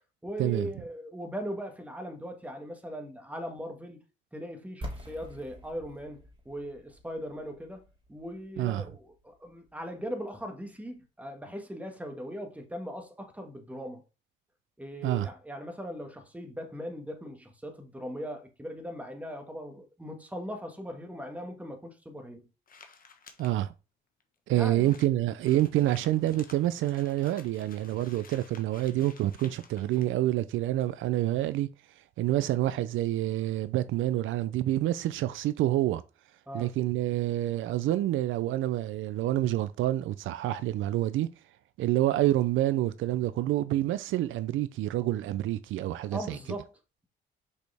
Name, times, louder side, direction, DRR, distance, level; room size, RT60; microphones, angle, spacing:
voice 1, 0.2-4.0 4.3-7.8 8.1-14.0 14.8-22.5 24.5-24.9 36.5-36.7 46.1-46.7, equal, 5° right, 1.7 m, -39 dB
sound 1, 4.8-10.5, equal, 25° right, 2.6 m, -46 dB
sound 2, 22.7-23.5 24.2-24.3 24.5-24.6 24.8-30.1, left 5 dB, 45° left, 1.4 m, -54 dB
voice 2, 23.4-23.7 24.5-31.7 32.2-36.0 36.5-41.3 41.8-46.4, right 14 dB, 80° right, 0.5 m, -27 dB
6.3 x 5.2 x 3.5 m
cardioid pair, 90°, 20 cm